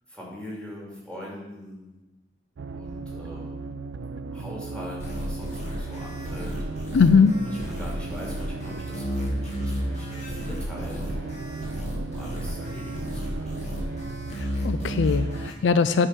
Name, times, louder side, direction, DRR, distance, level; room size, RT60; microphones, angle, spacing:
voice 1, 0.1-1.9 2.7-3.8 4.3-7.0 7.4-13.7, equal, 5° left, -4 dB, 2.7 m, -41 dB
sound 1, 2.6-15.5, right 4 dB, 85° right, 0.4 m, -36 dB
sound 2, 5.0-15.5, equal, 40° left, 2.0 m, -33 dB
voice 2, 6.9-7.3 14.4-16.1, left 5 dB, 75° left, 12 dB, 0.4 m, -20 dB
9.6 x 4.7 x 6.1 m, 1.0 s
head